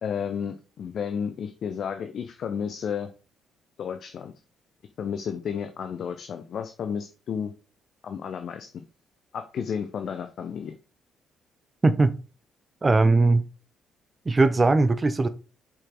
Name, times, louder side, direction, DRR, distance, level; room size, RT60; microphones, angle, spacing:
voice 1, 0.0-3.1 3.8-4.3 5.0-7.5 8.0-8.7 9.3-10.7, left 7 dB, 50° left, 0.7 m, -32 dB
voice 2, 12.8-13.4 14.3-15.3, right 3 dB, 25° right, 0.8 m, -19 dB
7.1 x 5.5 x 3.9 m
figure-of-eight pair, 45°, 0 cm